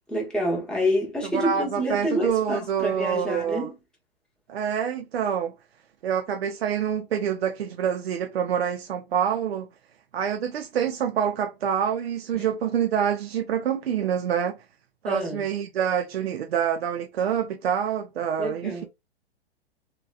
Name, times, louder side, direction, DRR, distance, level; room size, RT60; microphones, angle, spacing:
voice 1, 0.1-3.7 12.3-12.5 15.1-15.4 18.4-18.9, equal, 5° left, 0.9 m, -27 dB
voice 2, 1.3-3.7 4.5-5.5 6.0-9.7 10.1-14.6 15.0-18.8, right 8 dB, 75° right, 0.5 m, -26 dB
2.8 x 2.1 x 2.3 m
figure-of-eight pair, 110°, 31 cm